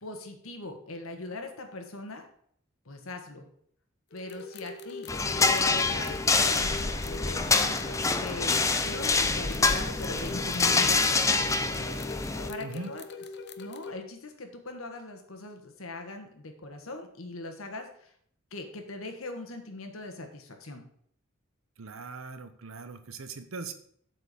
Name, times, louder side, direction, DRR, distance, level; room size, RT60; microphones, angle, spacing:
voice 1, 0.0-2.3 2.8-3.5 4.1-5.1 5.5-7.9 8.1-11.0 12.5-13.0 13.6-18.1 18.5-20.8, left 2 dB, 80° left, 5 dB, 1.5 m, -40 dB
sound 1, 4.1-13.9, left 3 dB, 50° left, 0.6 m, -42 dB
sound 2, 5.1-12.5, left 3 dB, 15° left, 0.5 m, -26 dB
voice 2, 12.6-12.9 21.8-23.7, right 3 dB, 75° right, 10 dB, 0.9 m, -40 dB
7.7 x 4.6 x 6.9 m, 0.65 s
head